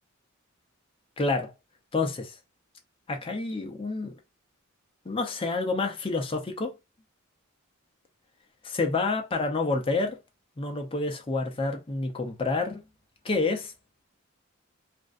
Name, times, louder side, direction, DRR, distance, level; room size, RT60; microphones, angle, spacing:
voice 1, 1.2-1.5 1.9-2.4 3.1-4.1 5.1-6.7 8.6-10.2 10.6-12.8 13.2-13.7, left 3 dB, 25° left, 0.5 m, -28 dB
2.5 x 2.1 x 2.4 m
head